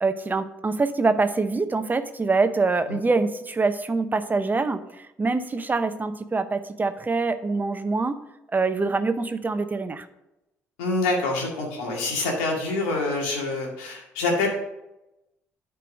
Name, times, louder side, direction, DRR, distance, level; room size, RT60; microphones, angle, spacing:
voice 1, 0.0-8.2 8.5-10.1, right 3 dB, 25° right, 10 dB, 0.7 m, -25 dB
voice 2, 10.8-14.5, left 3 dB, 75° left, -1 dB, 2.1 m, -26 dB
11.0 x 4.7 x 5.2 m, 0.91 s
hypercardioid pair, 50°, 7 cm